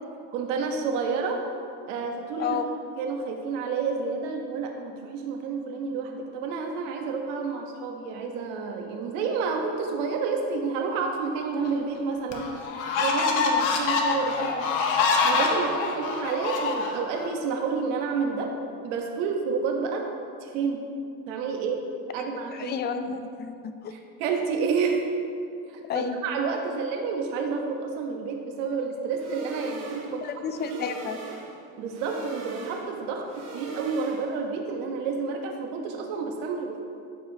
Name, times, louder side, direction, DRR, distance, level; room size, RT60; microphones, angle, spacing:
voice 1, 0.3-1.4 1.9-2.6 3.0-12.5 13.0-14.6 15.2-18.6 18.8-20.1 20.4-20.8 21.3-21.8 22.1-22.8 23.9-25.0 25.7-30.3 31.8-33.3 33.5-36.8, right 5 dB, 85° right, 2 dB, 1.1 m, -29 dB
sound 1, 11.6-11.7 12.3-17.3, left 4 dB, 55° left, 1.0 m, -25 dB
voice 2, 22.5-23.9 25.9-26.2 30.2-31.2, left 6 dB, 30° left, 8 dB, 0.4 m, -31 dB
sound 2, 29.1-34.5, right 4 dB, 45° right, 1.3 m, -41 dB
12.5 x 4.9 x 2.8 m, 2.4 s
cardioid pair, 135°, 37 cm